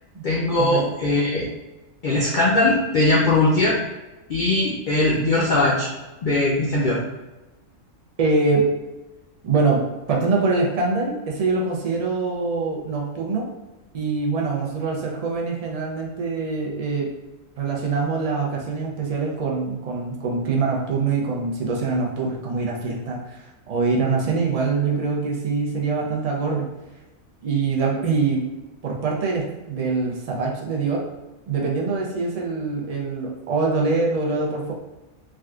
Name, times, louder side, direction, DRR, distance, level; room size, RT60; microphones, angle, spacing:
voice 1, 0.2-1.5 2.0-3.8 4.3-5.9 6.2-7.0, left 2 dB, 60° left, -5 dB, 0.5 m, -20 dB
voice 2, 8.2-8.8 9.4-13.5 13.9-17.1 17.6-26.7 27.4-28.5 28.8-31.0 31.5-34.7, right 4 dB, 75° right, -2 dB, 0.3 m, -24 dB
3.5 x 2.4 x 2.3 m, 1.1 s
omnidirectional pair, 1.4 m